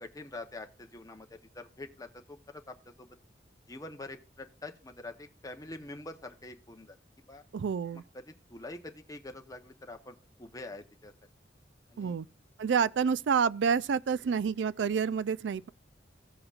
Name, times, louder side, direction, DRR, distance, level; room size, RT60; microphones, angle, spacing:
voice 1, 0.0-3.1 3.7-7.0 7.3-7.4 8.1-11.1 11.9-12.1, left 2 dB, 20° left, 0.8 m, -45 dB
voice 2, 7.5-8.0 12.0-12.3 12.6-15.7, right 6 dB, 85° right, 0.4 m, -28 dB
15.5 x 7.8 x 2.4 m
head